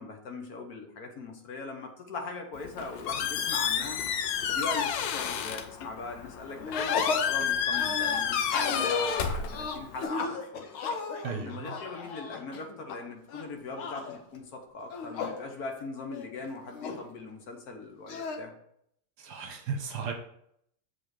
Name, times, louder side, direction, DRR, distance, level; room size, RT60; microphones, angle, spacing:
voice 1, 0.0-4.0 4.5-6.9 7.2-10.7 11.3-18.5, left 3 dB, 50° left, 3 dB, 1.5 m, -40 dB
Squeak, 2.5-10.0, left 8 dB, 70° left, 1.3 m, -30 dB
sound 1, 6.6-7.3 7.7-13.0 13.3-14.2 14.8-15.4 15.8-15.9 16.1-17.0 18.1-18.4, left 4 dB, 85° left, 1.8 m, -35 dB
voice 2, 11.2-11.7 19.2-20.1, right 6 dB, 60° right, 4 dB, 1.4 m, -35 dB
7.2 x 4.5 x 4.9 m, 0.71 s
omnidirectional pair, 2.2 m